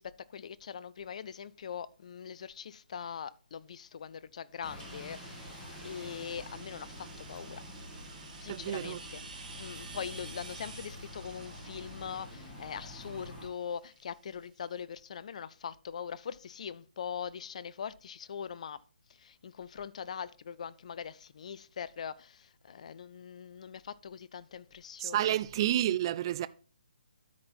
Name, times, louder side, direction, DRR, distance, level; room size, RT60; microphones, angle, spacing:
voice 1, 0.0-7.6 8.4-18.8 19.1-25.4, left 7 dB, 45° left, 0.5 m, -42 dB
Bus, 4.6-13.5, left 1 dB, 15° left, 2.3 m, -47 dB
sound 1, 4.8-14.4, right 4 dB, 55° right, 2.5 m, -51 dB
voice 2, 8.5-9.0 25.0-26.5, right 12 dB, 30° right, 0.4 m, -30 dB
13.0 x 4.3 x 4.1 m
figure-of-eight pair, 140°, 5 cm